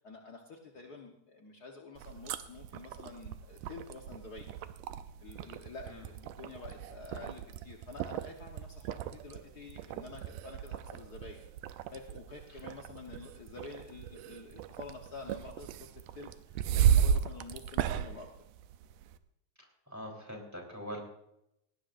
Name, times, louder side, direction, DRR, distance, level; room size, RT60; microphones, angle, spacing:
voice 1, 0.0-4.5 5.2-11.4 11.9-15.9 16.1-18.3, left 4 dB, 65° left, 1 dB, 0.9 m, -48 dB
sound 1, 2.0-19.2, right 9 dB, 90° right, 2.2 m, -35 dB
voice 2, 19.9-21.0, equal, 5° right, 0 dB, 3.1 m, -42 dB
19.5 x 18.0 x 2.6 m, 0.81 s
omnidirectional pair, 3.6 m